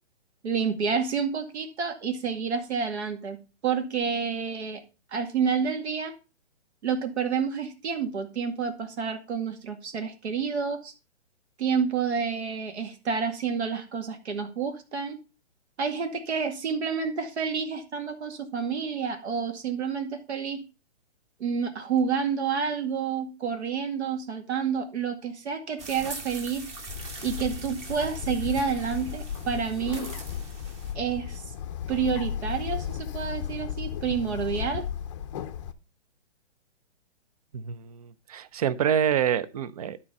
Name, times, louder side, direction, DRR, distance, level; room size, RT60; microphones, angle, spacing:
voice 1, 0.4-3.4 3.6-4.8 5.1-6.1 6.8-10.9 11.6-15.2 15.8-20.6 21.4-26.7 27.2-30.1 30.9-31.4 31.9-34.8, right 6 dB, 65° right, 2.1 m, -29 dB
sound 1, 25.8-30.9, right 2 dB, 20° right, 1.2 m, -41 dB
Bird, 26.9-35.7, left 8 dB, 25° left, 0.6 m, -35 dB
voice 2, 37.5-40.0, right 9 dB, 35° right, 0.5 m, -27 dB
12.0 x 4.3 x 5.3 m
hypercardioid pair, 150°, 36 cm